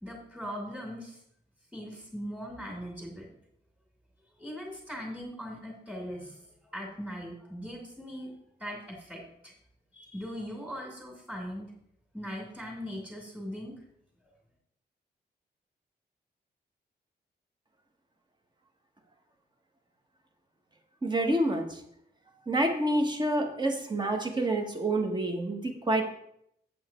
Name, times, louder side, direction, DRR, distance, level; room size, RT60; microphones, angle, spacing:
voice 1, 0.0-1.2 1.7-3.2 4.4-8.3 8.6-9.5 9.9-11.7 12.1-13.7, equal, 5° right, -2 dB, 2.8 m, -40 dB
voice 2, 21.0-21.6 22.5-26.1, right 1 dB, 25° right, 3 dB, 1.5 m, -28 dB
8.1 x 7.7 x 4.5 m, 0.73 s
wide cardioid pair, 115°, 18 cm